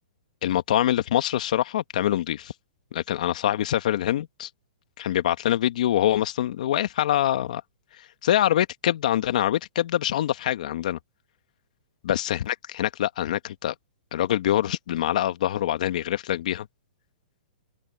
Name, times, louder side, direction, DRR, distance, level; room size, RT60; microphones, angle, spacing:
voice 1, 0.4-2.5 2.9-4.5 5.0-7.6 8.2-11.0 12.0-13.7 14.1-16.7, left 12 dB, 65° left, 1.6 m, -24 dB
open air
hypercardioid pair, 140°, 4 cm